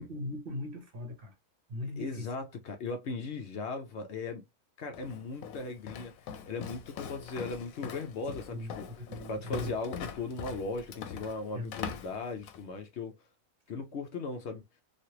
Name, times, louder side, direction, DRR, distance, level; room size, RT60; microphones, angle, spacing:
voice 1, 0.0-1.3 1.7-2.3 8.5-9.7 11.5-11.7, left 1 dB, 50° right, 0.9 m, -39 dB
voice 2, 2.0-4.4 4.8-6.1 6.5-13.2 13.7-14.6, left 3 dB, 65° left, 0.8 m, -38 dB
Walk footsteps, 4.9-12.7, left 7 dB, 90° left, 1.0 m, -42 dB
3.2 x 2.4 x 2.8 m
omnidirectional pair, 1.4 m